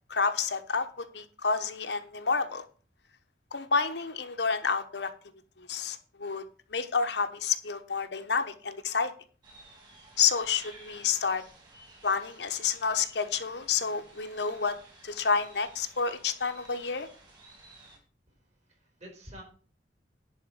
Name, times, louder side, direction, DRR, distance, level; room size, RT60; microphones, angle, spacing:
voice 1, 0.1-2.6 3.5-5.1 5.6-6.4 6.7-9.1 10.2-11.4 12.0-14.8 15.0-17.1, left 5 dB, 70° left, 8 dB, 1.0 m, -29 dB
sound 1, 9.4-18.0, right 2 dB, 25° right, 2.8 m, -54 dB
voice 2, 18.3-19.4, equal, 40° right, 1 dB, 4.1 m, -49 dB
10.5 x 4.4 x 7.3 m, 0.40 s
head